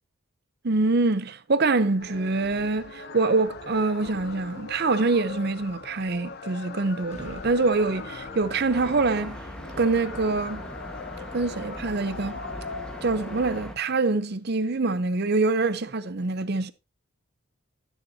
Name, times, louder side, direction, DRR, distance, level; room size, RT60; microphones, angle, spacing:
voice 1, 0.6-9.4 9.8-10.7 11.3-12.4 13.0-16.7, right 3 dB, 50° right, 0.7 m, -25 dB
sound 1, 2.0-13.6, left 4 dB, 50° left, 0.7 m, -40 dB
sound 2, 7.1-10.6, left 1 dB, 35° left, 1.1 m, -45 dB
sound 3, 8.7-13.7, equal, 5° left, 1.3 m, -40 dB
11.0 x 10.0 x 2.7 m
head